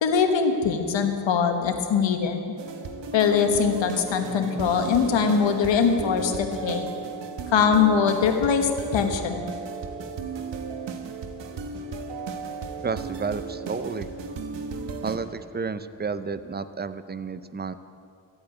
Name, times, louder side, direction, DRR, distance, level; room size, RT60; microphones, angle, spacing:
voice 1, 0.0-2.4 3.1-6.9 7.5-9.4, left 6 dB, 90° left, 6 dB, 1.4 m, -22 dB
sound 1, 2.6-15.2, right 4 dB, 75° right, 1.2 m, -35 dB
voice 2, 12.8-14.1 15.0-17.7, right 5 dB, 25° right, 13 dB, 0.6 m, -31 dB
13.0 x 8.8 x 8.9 m, 2.6 s
cardioid pair, 90°, 43 cm